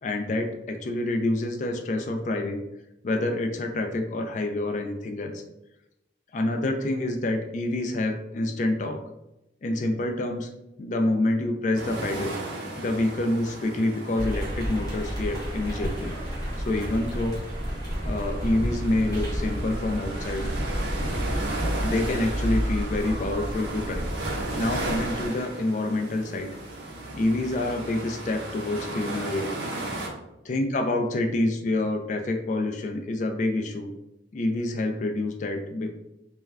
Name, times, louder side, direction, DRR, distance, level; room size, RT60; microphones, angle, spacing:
voice 1, 0.0-2.6 3.0-5.4 6.3-9.0 9.6-10.5 10.8-12.3 12.8-16.2 16.6-17.4 18.0-20.5 21.8-24.1 24.5-26.5 27.1-29.5 30.4-33.9 34.3-35.9, left 2 dB, 40° left, 5 dB, 0.3 m, -27 dB
sound 1, 11.7-30.1, right 2 dB, 80° right, 0.7 m, -36 dB
sound 2, 14.2-25.3, equal, 20° left, 0.7 m, -31 dB
2.3 x 2.2 x 3.2 m, 0.89 s
head